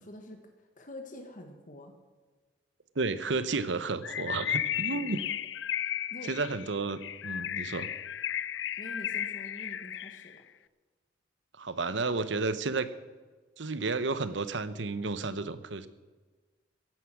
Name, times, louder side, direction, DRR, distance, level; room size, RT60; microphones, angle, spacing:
voice 1, 0.0-1.9 4.9-5.2 5.9-6.3 7.4-7.7 8.8-10.4, left 1 dB, 45° left, 4 dB, 1.5 m, -46 dB
voice 2, 2.9-5.2 6.3-7.9 11.6-12.9 13.6-15.9, right 3 dB, 75° right, 13 dB, 0.9 m, -32 dB
Bird, 4.0-10.3, left 10 dB, 75° left, 0.5 m, -34 dB
15.5 x 11.5 x 6.0 m, 1.3 s
head